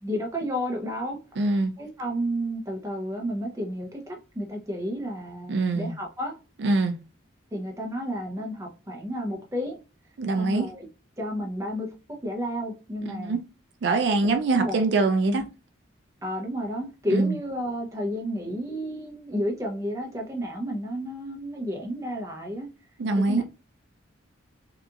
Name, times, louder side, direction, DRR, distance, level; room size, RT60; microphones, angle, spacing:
voice 1, 0.0-1.2 1.8-6.4 7.5-9.8 10.4-10.9 11.2-11.9 12.2-13.4 14.2-14.8 15.3-15.4 16.2-22.7 23.2-23.4, equal, 15° right, 0.6 m, -31 dB
voice 2, 1.4-1.7 5.5-5.9 6.6-7.0 10.2-10.7 13.1-13.4 13.8-15.4 17.1-17.3 23.0-23.4, right 3 dB, 60° right, 0.4 m, -23 dB
2.8 x 2.4 x 2.3 m
head